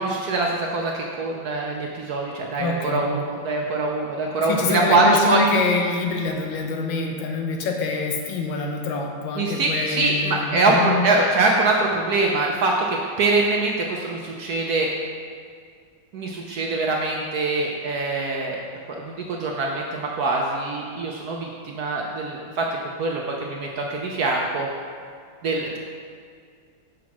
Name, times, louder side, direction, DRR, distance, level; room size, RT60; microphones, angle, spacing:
voice 1, 0.0-5.4 9.4-14.9 16.1-18.6 18.9-22.6 23.0-24.7 25.4-25.8, right 2 dB, 70° right, 0 dB, 0.9 m, -23 dB
voice 2, 2.6-3.1 4.5-11.1, left 3 dB, 75° left, 2 dB, 1.5 m, -25 dB
6.2 x 5.1 x 5.8 m, 2.2 s
omnidirectional pair, 2.2 m